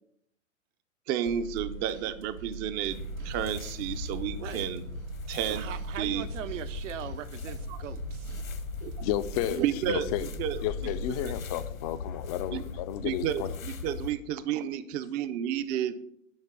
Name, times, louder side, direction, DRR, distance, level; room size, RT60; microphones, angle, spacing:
voice 1, 1.1-4.8 5.3-5.7 6.0-6.2 7.7-7.8 8.8-8.9 9.5-10.6 11.1-11.3 12.5-12.6 13.0-16.0, right 10 dB, 25° right, 0.5 m, -31 dB
sound 1, 1.3-11.5, right 4 dB, 85° right, 1.7 m, -42 dB
sound 2, 2.9-14.1, left 6 dB, 80° left, 1.4 m, -39 dB
voice 2, 5.4-8.3, right 10 dB, 65° right, 0.9 m, -40 dB
voice 3, 9.0-10.3 10.6-13.5, left 13 dB, 30° left, 0.5 m, -32 dB
10.5 x 3.9 x 7.4 m
hypercardioid pair, 120°, 40 cm